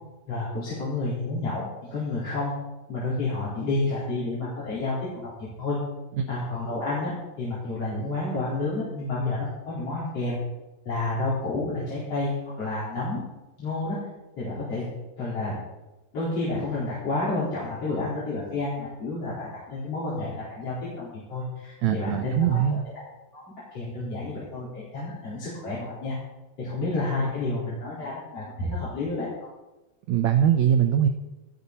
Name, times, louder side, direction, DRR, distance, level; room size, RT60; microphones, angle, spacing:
voice 1, 0.3-1.6 1.9-2.5 2.9-5.3 5.6-5.8 6.3-10.3 10.8-13.2 13.6-14.0 14.4-14.8 15.2-15.6 16.1-22.8 23.3-23.4 23.7-26.1 26.6-29.3, left 2 dB, 40° left, -9 dB, 5.2 m, -30 dB
voice 2, 21.8-22.8 30.1-31.1, right 9 dB, 80° right, 6 dB, 1.6 m, -22 dB
18.0 x 13.5 x 4.2 m, 1.1 s
omnidirectional pair, 4.2 m